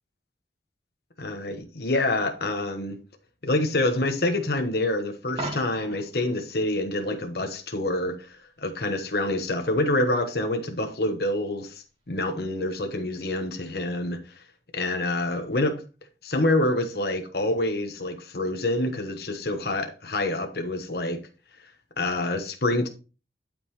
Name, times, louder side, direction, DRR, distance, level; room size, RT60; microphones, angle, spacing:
voice 1, 1.2-3.0 3.4-8.3 8.6-14.4 14.7-15.8 16.2-21.2 22.0-22.9, left 2 dB, 55° left, 1.2 m, -27 dB
Coin (dropping), 5.3-6.1 12.2-12.4, right 2 dB, 30° right, 2.3 m, -35 dB
12.0 x 5.4 x 3.1 m
head